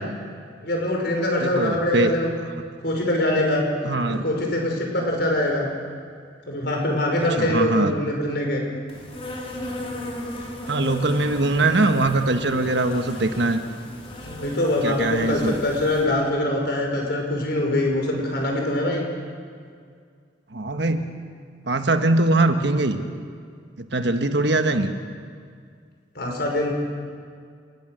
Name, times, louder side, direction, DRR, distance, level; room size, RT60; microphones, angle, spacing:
voice 1, 0.6-2.3 2.8-3.7 4.1-5.7 6.5-8.6 14.2-19.0 26.1-26.7, left 1 dB, 60° left, 1 dB, 5.7 m, -23 dB
voice 2, 1.4-2.2 3.8-4.2 7.2-7.9 10.7-13.6 14.8-15.6 20.5-21.1 21.6-23.0 23.8-24.9, right 2 dB, 65° right, 7 dB, 1.4 m, -22 dB
Insect, 8.9-16.1, left 1 dB, 30° left, 4.1 m, -36 dB
28.0 x 20.5 x 6.6 m, 2.1 s
head